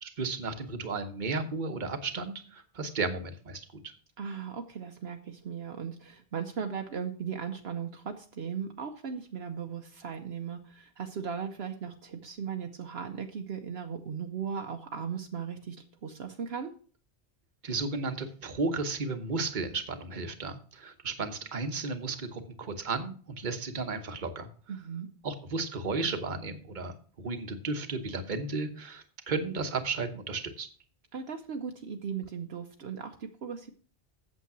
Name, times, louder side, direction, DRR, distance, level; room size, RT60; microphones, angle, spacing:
voice 1, 0.0-3.6 17.6-24.5 25.2-30.7, right 3 dB, 45° right, 7 dB, 1.2 m, -34 dB
voice 2, 4.2-15.8 16.0-16.7 24.7-25.1 31.1-33.7, right 7 dB, 65° right, 4 dB, 1.0 m, -37 dB
8.4 x 7.4 x 6.0 m, 0.42 s
omnidirectional pair, 1.1 m